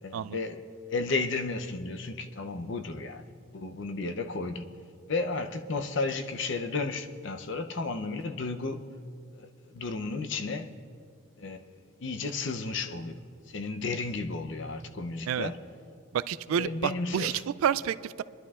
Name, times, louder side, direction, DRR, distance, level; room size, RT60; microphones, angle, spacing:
voice 1, 0.0-3.2 3.5-4.6 5.1-8.8 9.4-10.7 11.4-13.2 13.5-15.6 16.6-17.4, left 3 dB, 60° left, 0.7 m, -33 dB
voice 2, 16.1-18.2, right 8 dB, 85° right, 0.3 m, -29 dB
27.0 x 11.5 x 2.4 m
head